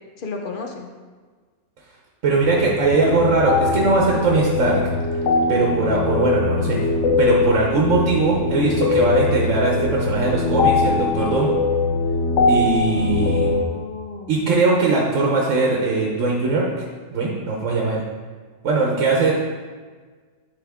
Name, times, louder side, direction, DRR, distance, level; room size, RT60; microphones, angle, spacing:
voice 1, 0.2-0.9 13.0-14.5 19.2-19.3, left 4 dB, 50° left, 2 dB, 0.8 m, -34 dB
voice 2, 2.2-4.8 5.5-6.8 7.2-11.6 12.5-13.5 14.3-16.8 17.1-18.0 18.6-19.3, right 3 dB, 90° right, -2 dB, 1.2 m, -20 dB
sound 1, 2.4-10.4, equal, 55° right, 1.1 m, -37 dB
sound 2, 2.9-13.6, left 3 dB, 75° left, 0.9 m, -21 dB
9.7 x 3.6 x 3.5 m, 1.5 s
omnidirectional pair, 1.3 m